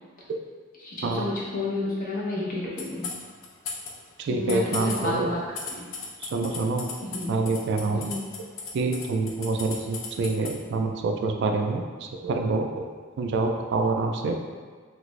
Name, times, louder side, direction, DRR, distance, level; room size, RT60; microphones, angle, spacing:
voice 1, 0.8-3.1 4.3-5.4 5.7-5.9 7.0-7.3 7.9-8.3, left 2 dB, 45° left, -7 dB, 0.8 m, -31 dB
sound 1, 2.8-3.9 4.3-10.5, left 5 dB, 80° left, 0.5 m, -35 dB
voice 2, 4.2-5.3 6.2-6.9 7.3-8.1 8.7-12.9 13.2-14.4, right 3 dB, 60° right, 3 dB, 0.3 m, -26 dB
3.2 x 2.5 x 3.1 m, 1.5 s
head